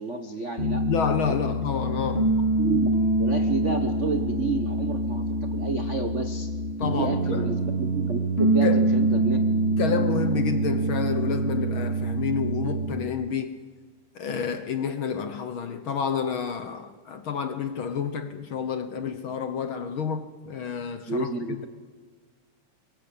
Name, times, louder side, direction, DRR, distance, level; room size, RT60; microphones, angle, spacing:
voice 1, 0.0-0.8 1.3-1.4 2.6-2.9 3.2-6.5 7.0-9.4 21.1-21.7, right 4 dB, 75° right, 0.6 m, -30 dB
Piano, 0.6-13.1, right 2 dB, 25° left, 1.7 m, -25 dB
voice 2, 0.9-2.3 6.8-7.5 8.6-8.9 9.8-13.6 14.1-21.3, left 7 dB, 60° left, 1.4 m, -29 dB
23.0 x 22.5 x 8.6 m
omnidirectional pair, 3.3 m